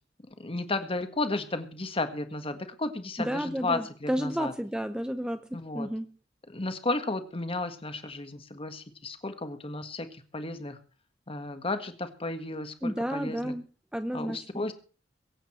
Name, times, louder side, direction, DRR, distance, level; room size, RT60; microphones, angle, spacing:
voice 1, 0.3-4.5 5.5-5.9 6.5-10.8 11.3-13.5 14.1-14.7, left 2 dB, 30° left, 9 dB, 1.7 m, -33 dB
voice 2, 3.2-5.5 5.7-6.1 12.8-13.7 13.9-14.4, equal, 5° right, 10 dB, 0.6 m, -31 dB
22.5 x 8.6 x 4.4 m, 0.38 s
head